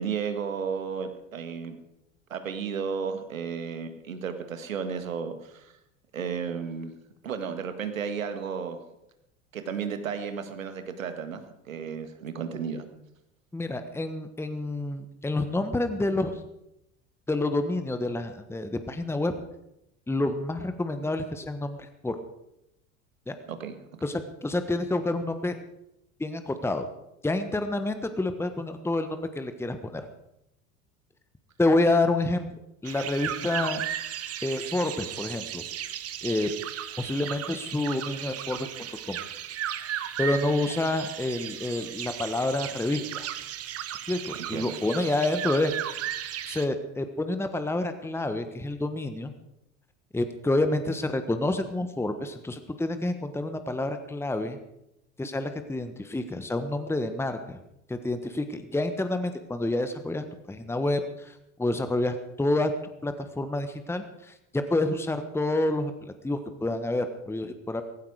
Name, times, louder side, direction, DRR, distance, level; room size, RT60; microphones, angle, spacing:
voice 1, 0.0-1.8 2.3-5.7 6.1-6.9 7.2-8.8 9.5-12.9 23.5-23.8 44.5-44.8, right 6 dB, 80° right, 8 dB, 1.9 m, -33 dB
voice 2, 13.5-16.4 17.3-19.3 20.1-22.2 23.3-23.4 24.0-25.5 26.2-26.9 27.2-30.1 31.6-32.5 32.8-33.8 34.4-35.6 36.2-36.5 37.0-38.7 39.1-39.2 40.2-43.3 44.1-45.7 46.5-49.3 50.1-54.6 55.2-57.6 57.9-62.7 63.0-67.8, left 2 dB, 5° left, 9 dB, 1.3 m, -28 dB
sound 1, 32.8-46.7, right 11 dB, 40° right, 1.3 m, -35 dB
17.0 x 15.5 x 4.9 m, 0.84 s
hypercardioid pair, 75°, 39 cm